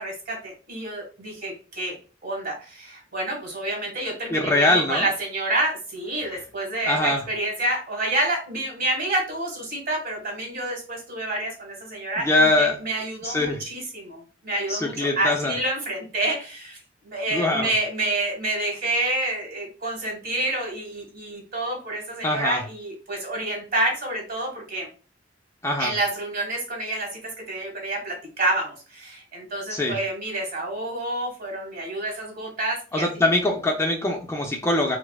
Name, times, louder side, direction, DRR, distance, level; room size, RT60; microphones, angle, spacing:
voice 1, 0.0-1.9 2.2-16.8 17.0-24.9 25.8-27.2 27.5-33.1, right 1 dB, 50° right, 0 dB, 1.5 m, -28 dB
voice 2, 4.3-5.0 6.3-6.4 6.9-7.2 12.2-12.8 13.2-13.6 14.7-15.5 17.3-17.7 22.2-22.6 25.6-25.9 29.7-30.0 32.9-35.0, left 2 dB, 15° left, 2 dB, 0.4 m, -22 dB
4.6 x 2.0 x 2.3 m, 0.36 s
head